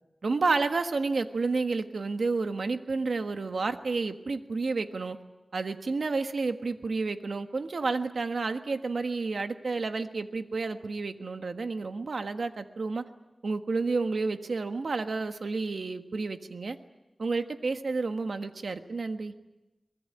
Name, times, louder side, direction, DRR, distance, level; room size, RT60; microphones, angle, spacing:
voice 1, 0.2-5.2 5.5-13.1 13.4-16.8 17.2-19.3, right 3 dB, 85° right, 7 dB, 1.4 m, -30 dB
23.5 x 21.0 x 8.9 m, 1.0 s
wide cardioid pair, 60°, 0 cm